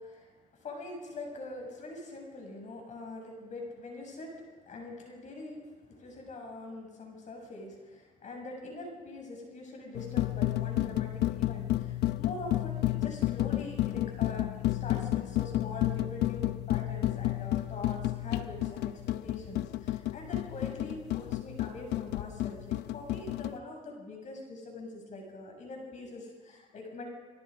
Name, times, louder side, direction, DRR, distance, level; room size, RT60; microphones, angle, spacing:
voice 1, 0.0-27.1, left 2 dB, 45° left, 1 dB, 7.4 m, -43 dB
sound 1, 9.9-23.6, left 15 dB, 80° left, 0.8 m, -31 dB
29.5 x 22.0 x 5.2 m, 1.4 s
cardioid pair, 110°, 17 cm